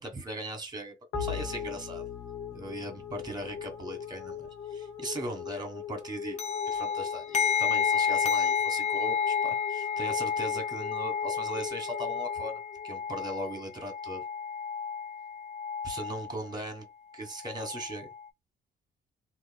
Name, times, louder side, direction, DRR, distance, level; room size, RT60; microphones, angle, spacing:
voice 1, 0.0-2.1 2.5-6.4 6.7-14.2 15.8-16.9 17.1-18.1, right 1 dB, 20° right, 1.3 m, -39 dB
sound 1, 1.1-13.6, left 7 dB, 80° left, 0.7 m, -40 dB
Bowed string instrument, 1.1-6.2, left 5 dB, 5° left, 0.8 m, -44 dB
sound 2, 6.4-16.5 17.3-18.3, left 7 dB, 35° left, 0.5 m, -31 dB
2.9 x 2.3 x 2.3 m
cardioid pair, 90°, 20 cm